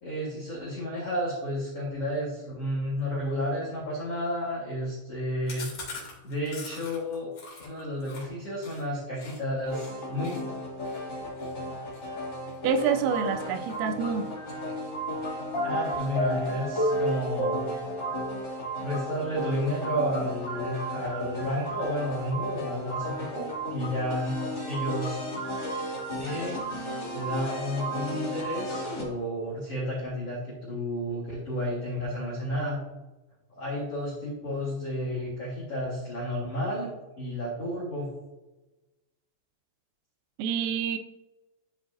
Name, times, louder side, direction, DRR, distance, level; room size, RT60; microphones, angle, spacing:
voice 1, 0.0-5.7 6.2-7.3 7.6-10.4 15.6-17.8 18.8-25.2 26.1-26.6 27.1-32.8 33.5-36.9 37.2-38.1, equal, 75° left, -7 dB, 1.4 m, -31 dB
Chewing mastication, 5.5-9.4 9.7-9.9 10.2-13.2 13.6-13.9 14.2-15.1 15.4-15.5 15.8-15.9 16.2-16.7, left 4 dB, 45° left, 2.9 m, -44 dB
sound 1, 9.6-29.1, equal, 30° left, 1.9 m, -33 dB
voice 2, 12.6-14.3 40.4-41.0, right 6 dB, 85° right, 8 dB, 3.2 m, -27 dB
13.5 x 4.8 x 2.7 m, 1.1 s
omnidirectional pair, 5.8 m